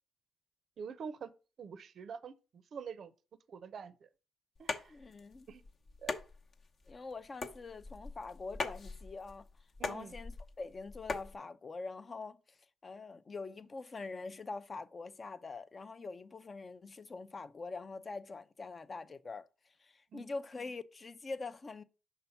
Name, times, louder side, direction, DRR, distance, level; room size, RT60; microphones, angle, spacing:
voice 1, 0.8-1.3 1.6-3.1 3.5-3.9 4.6-4.9 5.5-5.6 6.0-6.2 9.8-10.1 20.1-20.3, right 6 dB, 55° right, 0.5 m, -46 dB
sound 1, 4.5-11.3, left 3 dB, 50° left, 0.9 m, -42 dB
voice 2, 4.9-5.5 6.9-9.5 9.8-12.6 12.8-19.5 19.8-21.8, left 3 dB, 35° left, 0.5 m, -44 dB
5.6 x 3.5 x 5.7 m
cardioid pair, 90°, 0 cm